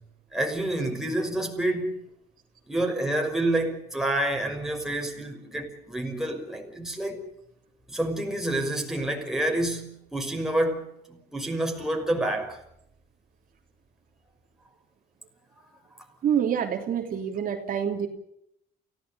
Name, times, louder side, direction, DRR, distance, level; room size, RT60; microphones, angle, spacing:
voice 1, 0.3-2.0 2.7-7.2 7.9-12.6, right 1 dB, 5° right, 5.8 m, -28 dB
voice 2, 16.2-18.1, right 8 dB, 55° right, 3.1 m, -26 dB
28.5 x 17.0 x 7.0 m
cardioid pair, 110°, 17 cm